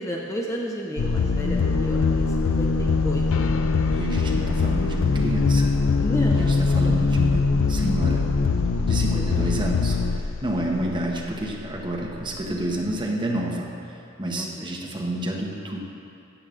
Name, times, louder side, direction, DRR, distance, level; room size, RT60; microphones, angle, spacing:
voice 1, 0.0-3.5 5.9-7.2 9.1-9.5 10.5-10.7 14.3-14.9, equal, 15° left, -1 dB, 0.6 m, -33 dB
sound 1, 1.0-11.2, left 4 dB, 75° left, 0.4 m, -22 dB
voice 2, 3.9-5.8 6.4-8.3 8.9-13.8 14.2-15.9, right 1 dB, 25° right, -1 dB, 1.0 m, -29 dB
14.0 x 9.2 x 2.5 m, 2.6 s
head